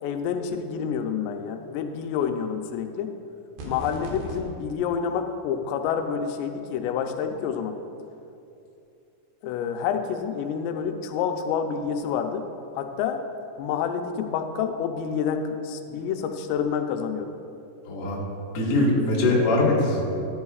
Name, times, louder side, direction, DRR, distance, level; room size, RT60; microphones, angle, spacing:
voice 1, 0.0-3.1 3.7-7.8 9.4-12.4 12.7-13.2 13.6-17.3, left 7 dB, 90° left, 6 dB, 2.8 m, -28 dB
sound 1, 3.6-4.4, equal, 70° right, 3.3 m, -36 dB
voice 2, 17.8-18.2 18.5-20.0, left 2 dB, 50° left, -4 dB, 1.9 m, -22 dB
13.5 x 10.5 x 2.4 m, 2.7 s
omnidirectional pair, 4.8 m